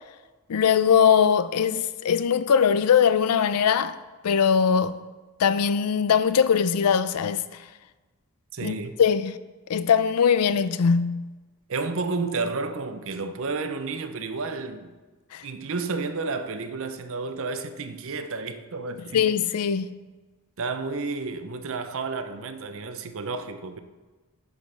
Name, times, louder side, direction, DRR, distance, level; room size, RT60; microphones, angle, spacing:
voice 1, 0.5-4.0 4.2-5.0 5.4-7.4 8.6-8.7 9.0-9.4 9.7-11.3 15.3-15.4 19.1-19.9, left 7 dB, 85° left, 0.4 m, -21 dB
voice 2, 8.5-9.0 11.7-14.9 15.4-19.3 20.6-23.8, right 3 dB, 65° right, 0.7 m, -31 dB
10.0 x 5.3 x 5.1 m
head